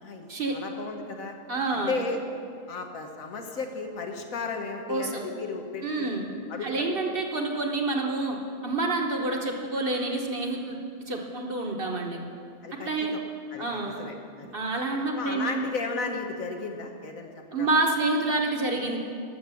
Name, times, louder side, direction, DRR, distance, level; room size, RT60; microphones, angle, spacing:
voice 1, 0.0-1.3 1.7-2.2 2.7-6.1 6.5-6.7 12.6-13.2 13.5-14.6 15.1-17.3 17.6-17.7, left 4 dB, 75° left, 4 dB, 1.4 m, -34 dB
voice 2, 1.5-1.9 4.9-5.2 5.8-6.3 6.6-8.4 8.6-10.8 11.1-12.2 12.8-13.1 13.6-14.1 14.5-15.7 17.5-19.0, right 2 dB, 45° right, 1 dB, 1.1 m, -28 dB
12.5 x 6.4 x 6.9 m, 2.4 s
omnidirectional pair, 1.5 m